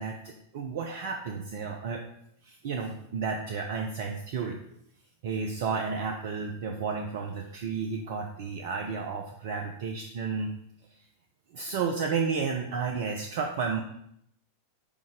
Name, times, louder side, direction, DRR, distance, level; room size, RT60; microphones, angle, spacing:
voice 1, 0.0-2.0 2.4-4.6 5.2-10.5 11.5-13.8, right 5 dB, 50° right, 3 dB, 0.7 m, -32 dB
7.1 x 5.3 x 4.9 m, 0.72 s
figure-of-eight pair, 90°, 0 cm